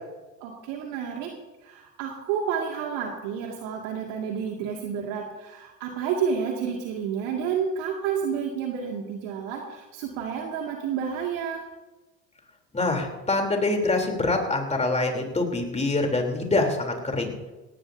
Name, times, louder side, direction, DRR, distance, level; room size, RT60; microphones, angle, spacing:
voice 1, 0.4-1.3 1.6-11.6, right 7 dB, 55° right, 0 dB, 2.4 m, -30 dB
voice 2, 12.7-17.4, left 2 dB, 15° left, 2 dB, 3.5 m, -25 dB
18.5 x 18.0 x 2.8 m, 1.1 s
hypercardioid pair, 80°, 50 cm